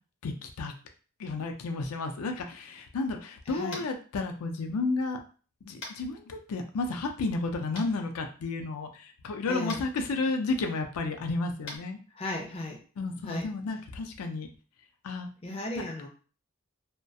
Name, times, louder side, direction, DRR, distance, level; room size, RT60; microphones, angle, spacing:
voice 1, 0.2-0.7 1.2-5.2 5.6-12.0 13.0-14.5 15.0-15.3 15.8-15.9, left 3 dB, 90° left, 5 dB, 0.4 m, -32 dB
voice 2, 3.5-3.8 9.5-9.8 12.2-12.8 13.2-13.5 15.4-16.1, left 1 dB, 25° left, 1 dB, 0.4 m, -35 dB
Tap, 3.7-4.0 5.8-6.0 7.7-7.8 9.6-9.8 11.6-11.8, left 2 dB, 60° left, 0.8 m, -40 dB
2.3 x 2.1 x 2.6 m, 0.38 s
head